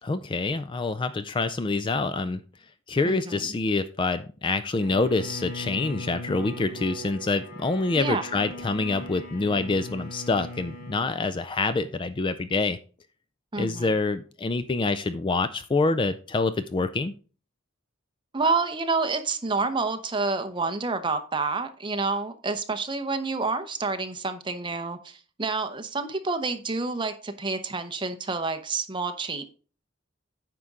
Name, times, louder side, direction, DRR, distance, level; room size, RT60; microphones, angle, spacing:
voice 1, 0.0-2.4 2.9-12.8 13.6-17.1, left 3 dB, 25° left, 12 dB, 0.3 m, -26 dB
voice 2, 3.0-3.5 7.9-8.2 13.5-14.0 18.3-29.4, right 3 dB, 25° right, 8 dB, 0.8 m, -28 dB
Bowed string instrument, 4.8-11.1, left 1 dB, 70° left, 3.0 m, -39 dB
9.5 x 5.9 x 3.7 m, 0.38 s
head